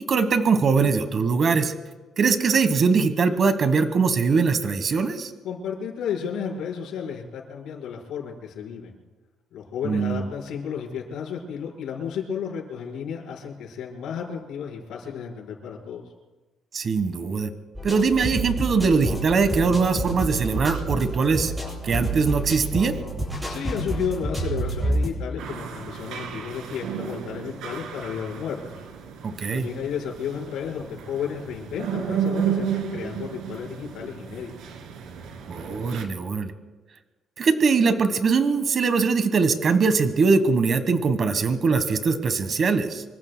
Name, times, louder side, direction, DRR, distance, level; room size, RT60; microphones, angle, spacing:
voice 1, 0.1-1.7 2.2-5.3 9.8-10.2 16.7-17.5 17.8-21.5 21.8-23.0 29.2-29.7 35.5-36.5 37.4-43.0, right 5 dB, 40° right, 10 dB, 1.3 m, -22 dB
voice 2, 5.4-9.0 9.5-16.0 23.5-28.8 29.5-34.5, left 7 dB, 75° left, -1 dB, 4.7 m, -33 dB
sound 1, 17.7-25.1, right 1 dB, 10° right, 7.7 m, -29 dB
sound 2, 25.4-36.0, right 7 dB, 85° right, 2.2 m, -33 dB
25.5 x 24.5 x 2.3 m, 1.2 s
cardioid pair, 140°, 0 cm